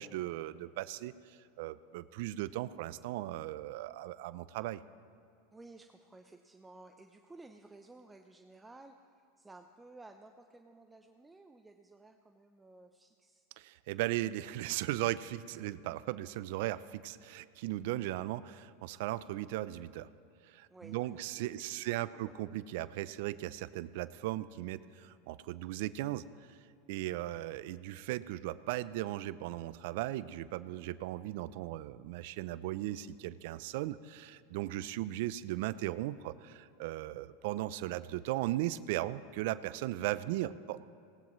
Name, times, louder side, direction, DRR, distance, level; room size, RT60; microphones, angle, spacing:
voice 1, 0.0-4.8 13.6-20.1 20.4-26.6 26.9-40.8, right 15 dB, 65° right, 16 dB, 0.4 m, -37 dB
voice 2, 5.5-13.4 20.7-21.4 21.7-22.5, right 2 dB, 10° right, 5 dB, 0.6 m, -55 dB
18.0 x 18.0 x 3.1 m, 2.5 s
supercardioid pair, 115°, 0 cm